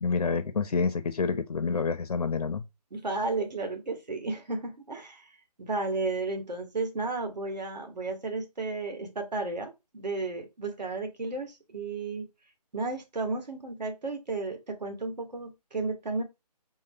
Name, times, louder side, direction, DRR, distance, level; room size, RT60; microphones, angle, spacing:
voice 1, 0.0-2.6, left 5 dB, 65° left, 0.4 m, -28 dB
voice 2, 2.9-5.3 5.6-12.3 12.7-16.2, right 3 dB, 85° right, 1.4 m, -33 dB
3.8 x 2.1 x 3.6 m
hypercardioid pair, 180°, 21 cm